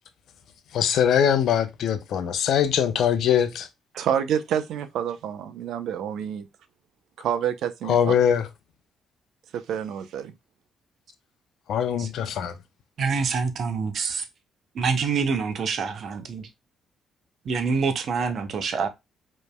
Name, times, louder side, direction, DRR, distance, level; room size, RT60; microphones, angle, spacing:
voice 1, 0.7-3.7 7.9-8.5 11.7-12.5, left 8 dB, 75° left, 0.7 m, -22 dB
voice 2, 4.0-6.5 7.2-8.1 9.5-10.3, right 9 dB, 80° right, 0.7 m, -28 dB
voice 3, 13.0-14.2 14.7-16.5 17.5-18.9, right 5 dB, 60° right, 0.9 m, -26 dB
5.2 x 3.2 x 2.2 m
cardioid pair, 90°, 0 cm